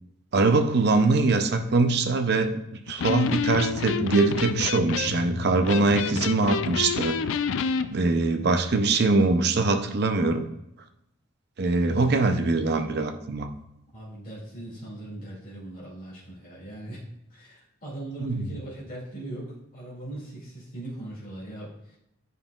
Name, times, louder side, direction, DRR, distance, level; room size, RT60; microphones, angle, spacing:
voice 1, 0.3-2.6 2.9-7.2 7.9-10.5 11.6-13.6 18.2-18.5, right 3 dB, 50° right, 7 dB, 0.5 m, -23 dB
Electric guitar, 2.9-7.9, left 6 dB, 70° left, 0.3 m, -29 dB
voice 2, 13.9-17.0 17.3-22.0, right 1 dB, 40° left, -7 dB, 2.3 m, -39 dB
9.2 x 5.4 x 2.4 m, 0.82 s
head